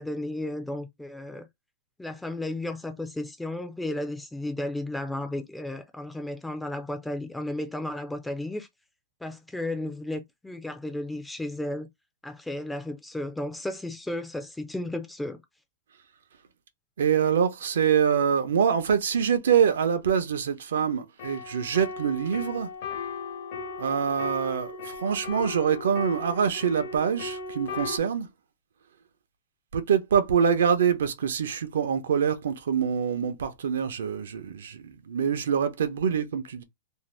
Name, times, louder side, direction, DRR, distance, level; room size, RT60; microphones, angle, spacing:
voice 1, 0.0-1.4 2.0-8.7 9.2-11.9 12.2-15.4, left 1 dB, 5° left, 0.3 m, -33 dB
voice 2, 17.0-22.7 23.8-28.3 29.7-36.6, right 7 dB, 80° right, 0.6 m, -25 dB
sound 1, 21.2-28.0, left 4 dB, 55° left, 0.7 m, -37 dB
2.6 x 2.0 x 3.1 m
hypercardioid pair, 160°, 0 cm